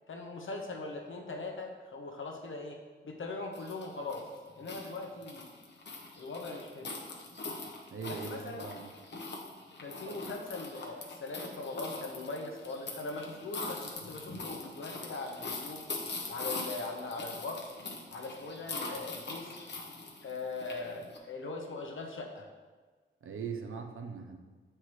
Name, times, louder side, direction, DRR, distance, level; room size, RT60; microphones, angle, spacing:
voice 1, 0.1-2.8 3.0-4.3 4.6-5.5 6.2-6.9 8.1-8.7 9.8-15.8 16.3-17.6 18.1-19.5 20.2-22.5, left 3 dB, 80° left, 2 dB, 0.9 m, -40 dB
sound 1, 3.5-21.2, left 3 dB, 60° left, 0.9 m, -42 dB
voice 2, 7.9-8.9 23.2-24.4, right 6 dB, 90° right, 3 dB, 0.7 m, -40 dB
7.9 x 4.4 x 3.1 m, 1.4 s
wide cardioid pair, 80°, 20 cm